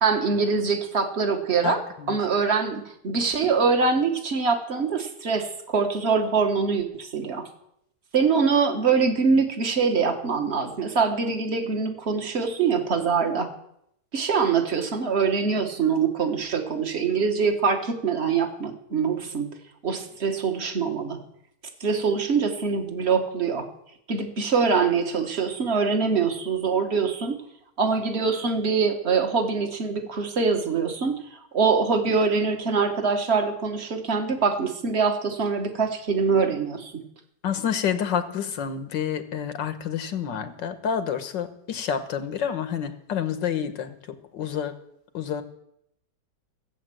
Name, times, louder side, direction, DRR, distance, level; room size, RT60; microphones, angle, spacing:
voice 1, 0.0-1.8 2.1-7.5 8.1-13.5 14.1-19.5 19.8-21.2 21.8-23.6 24.1-27.3 27.8-31.2 31.5-37.0, right 5 dB, 40° right, 5 dB, 1.7 m, -24 dB
voice 2, 1.6-2.2 37.4-44.7 45.1-45.4, left 8 dB, 85° left, 9 dB, 1.8 m, -29 dB
16.0 x 8.3 x 7.8 m, 0.76 s
omnidirectional pair, 1.9 m